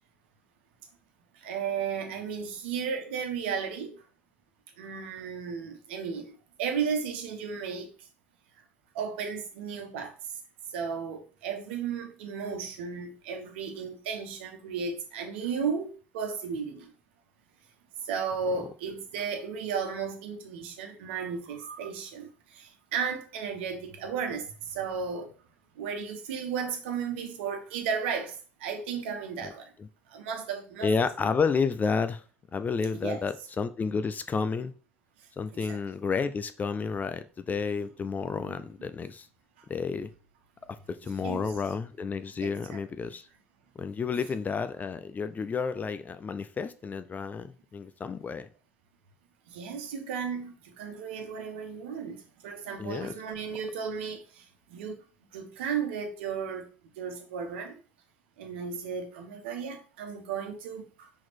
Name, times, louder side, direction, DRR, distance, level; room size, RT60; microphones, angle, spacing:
voice 1, 1.3-4.0 4.8-8.1 8.9-10.4 10.7-16.9 18.0-25.3 25.7-29.7 30.1-30.9 33.0-33.2 35.6-35.8 38.4-38.7 39.6-39.7 41.2-41.5 42.4-42.8 49.5-55.0 55.3-57.8 58.4-61.1, right 6 dB, 65° right, 1.3 m, -34 dB
voice 2, 30.8-32.2 32.5-34.7 35.4-39.3 39.7-40.1 40.7-43.3 43.8-48.5 52.8-53.1, left 5 dB, 25° left, 0.6 m, -31 dB
6.1 x 3.9 x 4.5 m
figure-of-eight pair, 65°, 7 cm